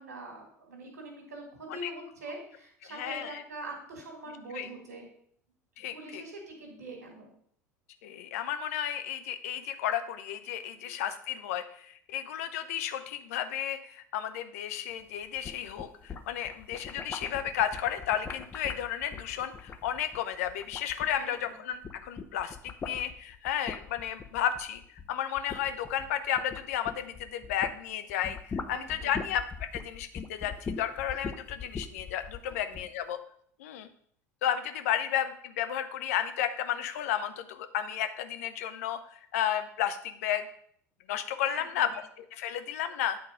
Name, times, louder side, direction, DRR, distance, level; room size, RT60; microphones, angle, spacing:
voice 1, 0.0-5.1 5.9-7.3 10.8-11.0 21.1-21.6 28.7-29.1 41.5-41.9, right 2 dB, 75° right, 2 dB, 1.9 m, -43 dB
voice 2, 2.8-3.4 4.5-4.7 5.8-6.2 8.0-24.8 25.1-33.2 33.6-33.9 34.4-40.5 41.1-41.9 42.2-43.2, left 10 dB, 65° left, 9 dB, 0.6 m, -33 dB
sound 1, 15.2-21.4 21.7-27.8 28.1-32.9, left 5 dB, 25° left, 0.7 m, -42 dB
8.6 x 3.9 x 5.0 m, 0.62 s
figure-of-eight pair, 70°, 9 cm